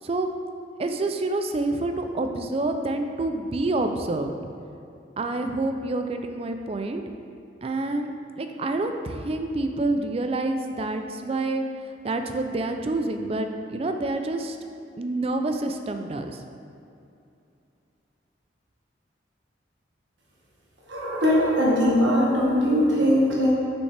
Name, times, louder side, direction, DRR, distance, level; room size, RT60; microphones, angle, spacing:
voice 1, 0.8-4.3 5.2-7.0 7.6-14.6 15.0-16.4, right 2 dB, 30° right, 6 dB, 0.3 m, -28 dB
voice 2, 20.9-23.5, equal, 80° right, -5 dB, 1.5 m, -21 dB
6.6 x 5.2 x 3.3 m, 2.6 s
head